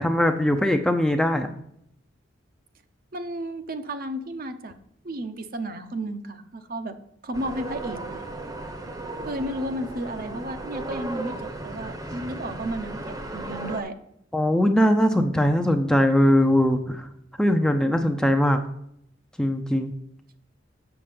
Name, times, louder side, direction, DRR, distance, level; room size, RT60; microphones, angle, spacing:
voice 1, 0.0-1.5 14.3-17.0 17.4-18.6 19.4-19.9, left 1 dB, 5° left, 5 dB, 0.6 m, -21 dB
voice 2, 3.1-4.7 5.0-7.0 7.2-8.3 9.2-14.0, right 1 dB, 50° right, 8 dB, 0.7 m, -33 dB
sound 1, 7.3-13.8, right 2 dB, 20° right, 0.9 m, -35 dB
7.1 x 6.6 x 5.1 m, 0.73 s
head